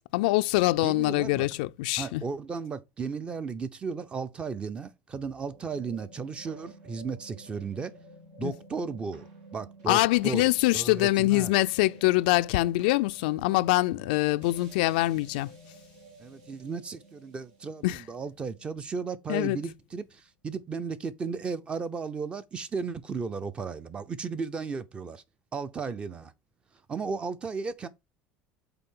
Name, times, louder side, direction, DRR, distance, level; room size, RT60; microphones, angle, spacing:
voice 1, 0.0-2.2 8.4-8.5 9.9-15.5 17.8-18.0 19.3-19.6, left 19 dB, 85° left, 0.4 m, -24 dB
voice 2, 0.8-1.5 2.0-7.9 8.4-11.5 16.2-25.2 25.5-26.3 26.9-27.9, right 5 dB, 25° right, 0.6 m, -35 dB
sound 1, 5.1-19.6, right 2 dB, 85° right, 3.4 m, -52 dB
6.8 x 4.2 x 3.7 m
supercardioid pair, 130°, 5 cm